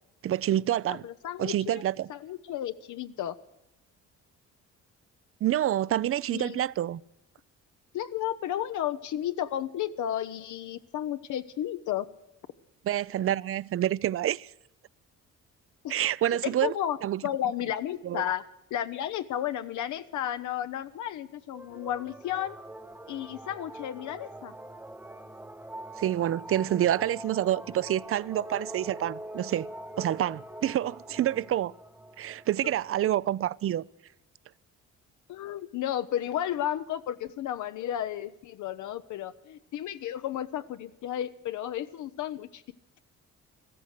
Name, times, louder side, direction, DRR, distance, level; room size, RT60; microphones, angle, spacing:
voice 1, 0.2-1.1 1.4-2.1 5.4-7.0 12.8-14.5 15.9-16.7 17.0-17.2 18.0-18.2 26.0-29.7 30.0-31.7 32.2-33.8, right 12 dB, 50° right, 0.4 m, -27 dB
voice 2, 0.9-1.8 2.1-3.3 6.3-6.6 7.9-12.1 15.8-15.9 16.3-17.0 17.2-18.4 18.7-22.5 23.1-24.5 35.3-42.6, left 11 dB, 75° left, 0.7 m, -33 dB
sound 1, 21.5-33.4, right 1 dB, 5° right, 1.0 m, -44 dB
14.5 x 13.5 x 6.5 m
cardioid pair, 90°, 30 cm